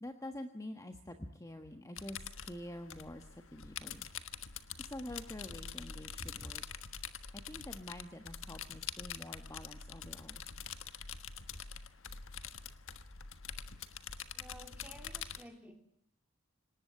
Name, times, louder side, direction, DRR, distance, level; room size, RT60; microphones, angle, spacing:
voice 1, 0.0-4.1 4.8-6.6 7.3-10.4 11.5-11.6, left 1 dB, 15° left, 6 dB, 1.4 m, -47 dB
sound 1, 2.0-15.4, left 7 dB, 65° left, 1.4 m, -45 dB
voice 2, 14.3-16.0, equal, 5° right, 4 dB, 3.1 m, -54 dB
27.0 x 18.5 x 9.4 m, 0.68 s
head